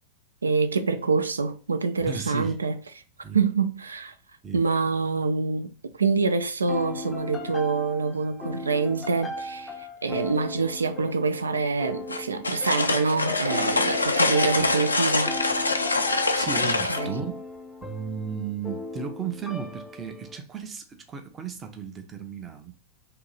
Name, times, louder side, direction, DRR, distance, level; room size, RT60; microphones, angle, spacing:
voice 1, 0.4-2.8 3.3-4.1 4.5-15.4 16.6-17.2, right 4 dB, 75° right, 0.4 m, -26 dB
voice 2, 2.0-2.6 3.2-3.4 4.4-4.6 14.6-14.7 16.4-17.4 17.8-22.8, right 6 dB, 20° right, 0.6 m, -35 dB
sound 1, 6.7-20.4, left 2 dB, 20° left, 0.5 m, -37 dB
sound 2, 12.1-17.0, left 3 dB, 80° left, 0.3 m, -25 dB
2.8 x 2.7 x 3.8 m
figure-of-eight pair, 90°, 0 cm